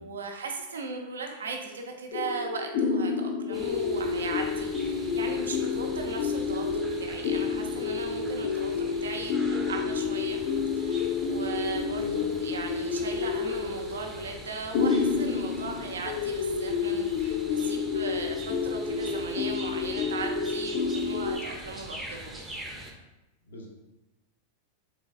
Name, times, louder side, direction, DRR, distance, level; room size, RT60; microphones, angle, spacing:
voice 1, 0.0-10.4 10.8-22.4, right 4 dB, 65° right, 3 dB, 0.5 m, -38 dB
sound 1, 2.1-21.4, left 5 dB, 50° left, 0.3 m, -29 dB
sound 2, 3.5-22.9, right 1 dB, 10° right, 0.6 m, -43 dB
voice 2, 12.0-12.4 23.4-23.7, left 1 dB, 65° left, 0 dB, 0.7 m, -45 dB
3.8 x 3.4 x 2.4 m, 0.99 s
figure-of-eight pair, 90°, 0 cm